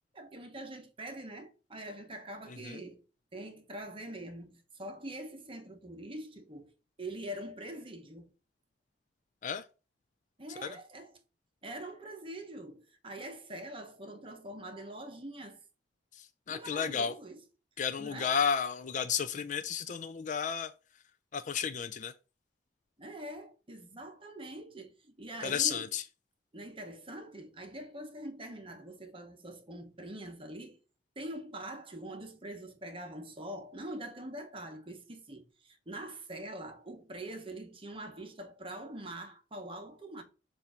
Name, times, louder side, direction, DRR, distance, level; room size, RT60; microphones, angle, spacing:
voice 1, 0.1-3.0 3.3-6.7 7.0-8.3 10.4-11.2 11.6-15.6 16.5-17.4 18.0-18.4 23.0-25.9 26.5-30.8 31.2-40.2, right 1 dB, 30° right, 1.1 m, -44 dB
voice 2, 16.2-17.1 17.8-20.7 21.3-22.1 25.4-26.0, left 7 dB, 45° left, 0.4 m, -32 dB
7.1 x 2.7 x 5.6 m
head